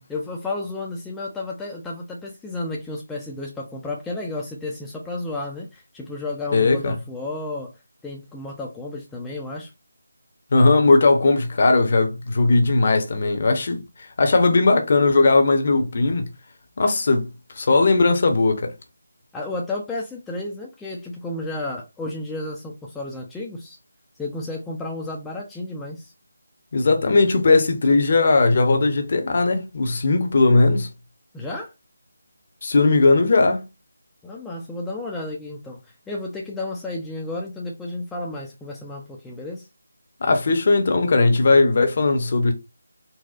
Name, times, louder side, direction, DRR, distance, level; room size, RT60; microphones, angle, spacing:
voice 1, 0.1-7.7 8.0-9.7 19.3-23.8 24.2-26.1 31.3-31.7 34.2-39.7, left 2 dB, 5° left, 0.4 m, -32 dB
voice 2, 6.5-6.9 10.5-13.8 14.2-16.3 16.8-17.3 17.6-18.7 26.7-30.9 32.6-33.6 40.2-42.5, left 3 dB, 40° left, 0.7 m, -18 dB
4.0 x 2.0 x 2.4 m
figure-of-eight pair, 155°, 0 cm